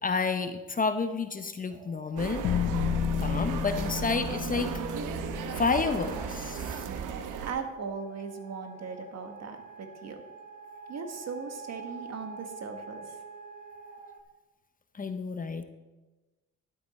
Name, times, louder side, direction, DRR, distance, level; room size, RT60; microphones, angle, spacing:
voice 1, 0.0-2.5 3.2-4.7 5.5-6.9 14.9-15.6, left 4 dB, 30° left, 9 dB, 0.8 m, -30 dB
sound 1, 1.7-5.5 5.9-14.2, right 3 dB, 30° right, 1.2 m, -48 dB
sound 2, 2.2-7.5, right 7 dB, 90° right, 0.9 m, -36 dB
sound 3, 2.4-6.7, left 7 dB, 75° left, 1.2 m, -32 dB
voice 2, 7.4-10.2 10.9-13.2, right 5 dB, 60° right, 5 dB, 1.5 m, -38 dB
11.5 x 7.9 x 4.2 m, 1.2 s
cardioid pair, 90°, 30 cm